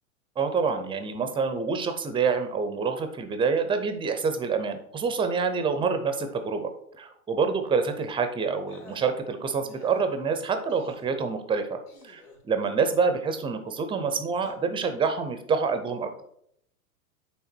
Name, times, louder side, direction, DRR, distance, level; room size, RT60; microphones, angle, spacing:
voice 1, 0.4-6.1 6.4-6.7 7.0-16.2, right 5 dB, 10° right, 8 dB, 0.6 m, -27 dB
sound 1, 7.9-8.2 8.7-9.0 9.7-10.0 10.7-11.1 11.9-12.4 14.3-14.5, left 2 dB, 85° left, 3.0 m, -51 dB
8.8 x 3.5 x 4.4 m, 0.71 s
hypercardioid pair, 115°, 45 cm